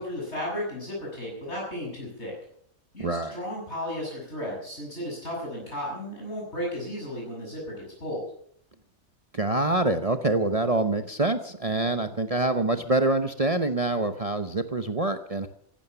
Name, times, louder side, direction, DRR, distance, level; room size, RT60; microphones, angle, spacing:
voice 1, 0.0-2.3 2.9-8.2, left 1 dB, 50° left, -4 dB, 7.2 m, -34 dB
voice 2, 3.0-3.4 9.3-15.5, right 2 dB, 30° right, 8 dB, 0.8 m, -25 dB
16.0 x 11.5 x 6.9 m, 0.67 s
omnidirectional pair, 1.5 m